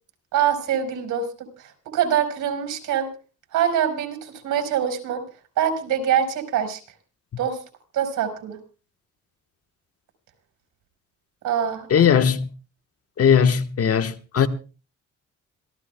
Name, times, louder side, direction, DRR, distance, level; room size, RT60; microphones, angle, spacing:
voice 1, 0.3-3.1 3.5-5.2 5.6-6.8 7.4-7.6 7.9-8.6 11.4-12.0, right 9 dB, 80° right, 4.5 m, -24 dB
voice 2, 11.9-12.5 13.2-14.5, left 7 dB, 50° left, 1.3 m, -18 dB
26.5 x 15.0 x 2.2 m
cardioid pair, 90°, 30 cm